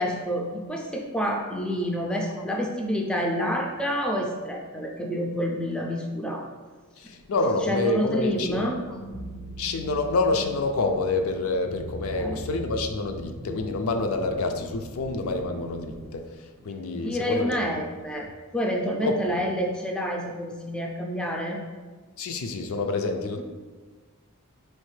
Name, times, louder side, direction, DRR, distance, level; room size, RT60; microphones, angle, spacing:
voice 1, 0.0-6.5 7.7-8.8 12.1-12.4 16.9-18.3 18.5-21.6, equal, 5° left, 0 dB, 0.3 m, -28 dB
voice 2, 7.0-8.7 9.6-17.6 19.0-19.2 22.2-23.4, left 3 dB, 70° left, 5 dB, 0.4 m, -27 dB
sound 1, 8.1-16.1, equal, 75° right, 0.5 m, -40 dB
4.3 x 3.2 x 3.2 m, 1.4 s
head